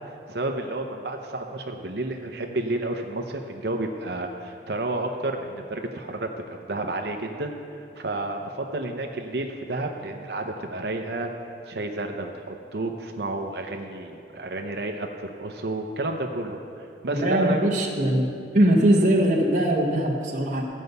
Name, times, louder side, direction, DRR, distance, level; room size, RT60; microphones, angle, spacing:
voice 1, 0.3-7.5 8.0-11.3 11.7-16.6 17.0-17.6, right 2 dB, 65° right, 3 dB, 0.7 m, -31 dB
voice 2, 17.1-18.3 18.5-20.6, right 1 dB, 45° right, -3 dB, 1.1 m, -21 dB
14.0 x 5.4 x 8.0 m, 2.5 s
head